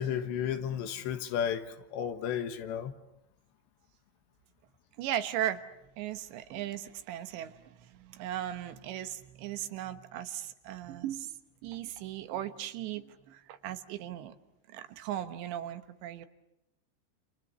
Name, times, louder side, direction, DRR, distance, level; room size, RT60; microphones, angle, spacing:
voice 1, 0.0-2.9, left 8 dB, 80° left, 8 dB, 3.7 m, -33 dB
voice 2, 5.0-5.6 6.0-11.3 11.6-14.4 14.7-16.3, right 11 dB, 80° right, 10 dB, 3.4 m, -37 dB
29.5 x 28.5 x 7.0 m, 0.85 s
omnidirectional pair, 5.1 m